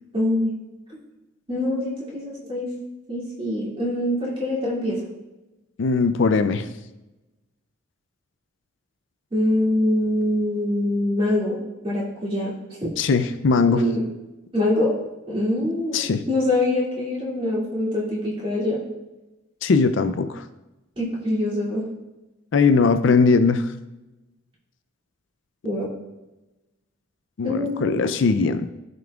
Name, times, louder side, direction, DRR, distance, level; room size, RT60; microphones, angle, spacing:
voice 1, 0.1-0.5 1.5-2.7 3.1-5.0 9.3-11.6 11.8-12.5 12.8-12.9 13.7-14.0 14.5-14.9 15.3-18.8 21.0-21.8 25.6-25.9 27.4-28.2, left 1 dB, 25° right, -6 dB, 2.4 m, -24 dB
voice 2, 5.8-6.7 13.0-13.8 15.9-16.2 19.6-20.4 22.5-23.7 27.4-28.7, left 4 dB, 60° left, 10 dB, 0.4 m, -20 dB
14.0 x 5.3 x 2.4 m, 1.0 s
head